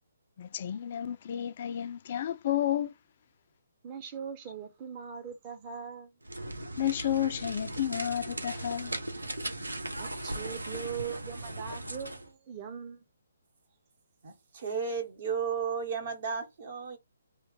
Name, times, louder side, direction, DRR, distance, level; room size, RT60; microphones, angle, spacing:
voice 1, 0.4-2.9 6.8-9.0, left 11 dB, 45° left, 0.4 m, -31 dB
voice 2, 3.8-6.1 10.0-13.0, right 7 dB, 25° right, 1.0 m, -41 dB
sound 1, 6.2-12.3, right 1 dB, 85° right, 0.9 m, -38 dB
voice 3, 14.2-17.0, right 6 dB, 50° right, 1.7 m, -33 dB
3.1 x 2.8 x 3.3 m
figure-of-eight pair, 140°, 0 cm